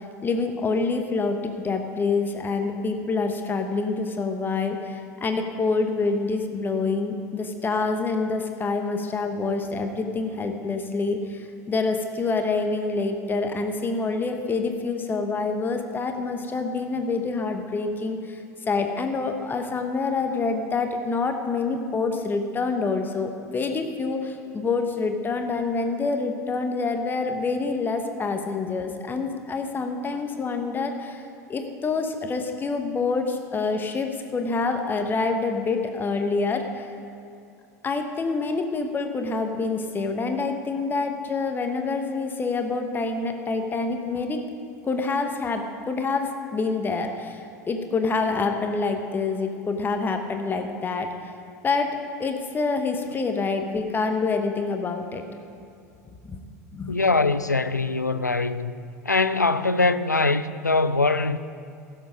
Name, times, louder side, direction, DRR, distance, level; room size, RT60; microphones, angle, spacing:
voice 1, 0.0-31.2 31.5-36.9 37.8-44.4 44.9-51.1 51.6-55.2 56.2-56.4 56.7-57.0, left 4 dB, 20° left, 1.0 m, -27 dB
voice 2, 56.9-58.7 59.0-61.4, left 3 dB, 85° left, 0.4 m, -22 dB
16.0 x 7.5 x 5.2 m
figure-of-eight pair, 75°, 9 cm